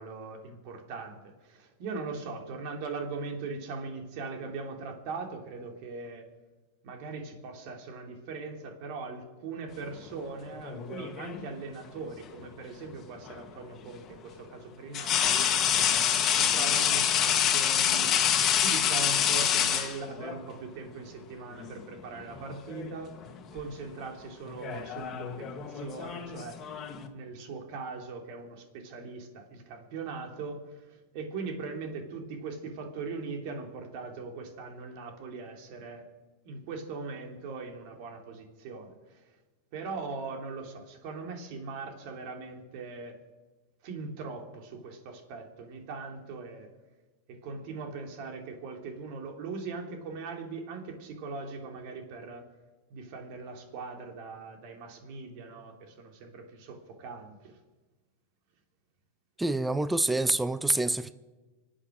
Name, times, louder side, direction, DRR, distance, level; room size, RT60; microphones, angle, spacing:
voice 1, 0.0-6.3 6.8-15.5 16.2-18.2 18.6-23.1 23.5-26.6 27.1-36.1 36.4-39.2 39.7-43.1 43.8-46.7 47.3-52.5 52.9-57.6, right 4 dB, 55° right, 3.3 m, -40 dB
sound 1, 10.6-11.5 13.2-13.4 14.9-20.4 21.6-21.8 22.2-23.0 23.2-23.6 24.5-27.1, left 9 dB, 35° left, 1.8 m, -27 dB
voice 2, 59.4-61.1, right 2 dB, 5° right, 0.6 m, -27 dB
25.5 x 8.6 x 6.5 m
supercardioid pair, 130°, 0 cm